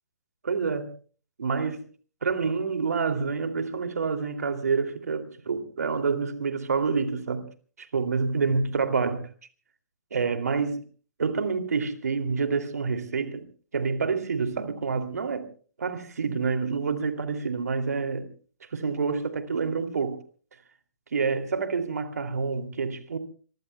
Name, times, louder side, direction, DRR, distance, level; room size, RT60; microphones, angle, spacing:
voice 1, 0.4-0.9 1.4-1.8 2.2-7.5 7.8-9.3 10.1-10.8 11.2-13.4 13.7-15.5 15.8-18.3 18.7-20.2 21.1-23.2, right 5 dB, 65° right, 2.7 m, -27 dB
26.5 x 24.5 x 2.3 m
figure-of-eight pair, 125°, 9 cm